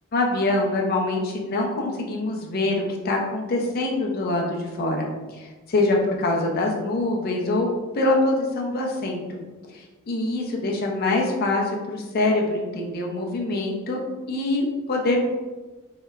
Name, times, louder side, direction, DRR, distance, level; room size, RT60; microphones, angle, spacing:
voice 1, 0.1-7.7 7.9-9.4 9.7-14.0 14.3-15.3, left 2 dB, 45° left, -1 dB, 0.4 m, -24 dB
2.8 x 2.1 x 2.3 m, 1.2 s
head